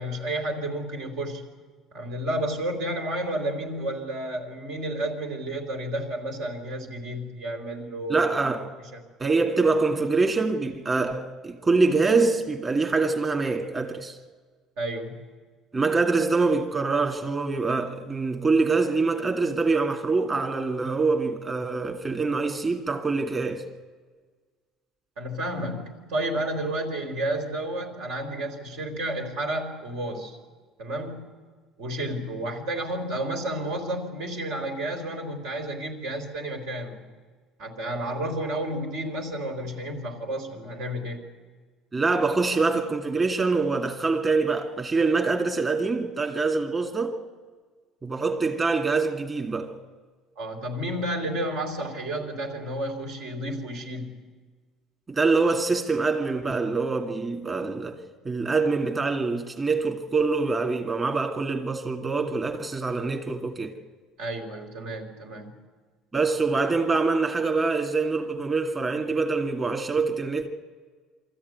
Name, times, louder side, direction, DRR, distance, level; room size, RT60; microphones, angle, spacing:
voice 1, 0.0-1.4 1.9-8.4 8.9-9.0 14.8-15.2 25.2-30.4 30.8-31.3 31.8-37.0 37.6-41.2 50.4-54.1 64.2-65.6, right 1 dB, 85° right, 4.2 m, -31 dB
voice 2, 8.1-8.7 9.2-14.2 15.7-23.7 41.9-47.2 48.0-49.7 55.1-63.8 66.1-70.5, right 4 dB, 30° right, 2.2 m, -25 dB
23.5 x 14.0 x 9.6 m
cardioid pair, 120°, 0 cm